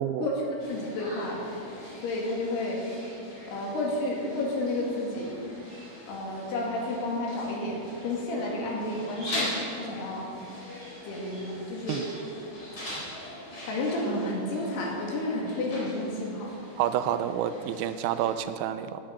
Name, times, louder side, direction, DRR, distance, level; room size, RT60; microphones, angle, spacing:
voice 1, 0.2-1.5 1.9-2.8 3.5-5.4 6.1-10.3 11.0-12.0 13.6-16.5, left 1 dB, 65° left, -1 dB, 4.1 m, -31 dB
sound 1, 0.6-18.4, left 1 dB, 30° left, 4.8 m, -41 dB
voice 2, 16.8-19.0, right 10 dB, 85° right, 10 dB, 2.9 m, -29 dB
18.0 x 10.0 x 6.5 m, 2.8 s
omnidirectional pair, 5.3 m